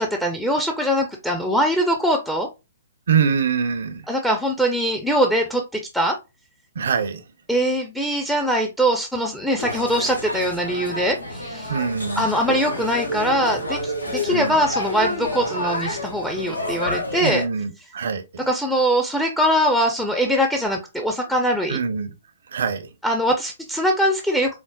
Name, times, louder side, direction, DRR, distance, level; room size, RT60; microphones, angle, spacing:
voice 1, 0.0-2.5 4.1-6.2 7.5-11.7 12.2-17.4 18.5-21.8 23.0-24.6, equal, ahead, 0.4 m, -22 dB
voice 2, 3.1-4.0 6.8-7.2 11.7-12.3 14.3-14.6 17.2-18.5 21.7-22.1 22.5-22.9, right 6 dB, 60° right, 0.6 m, -24 dB
sound 1, 9.6-17.5, left 1 dB, 90° left, 0.7 m, -29 dB
4.5 x 2.0 x 2.2 m
figure-of-eight pair, 120°, 0 cm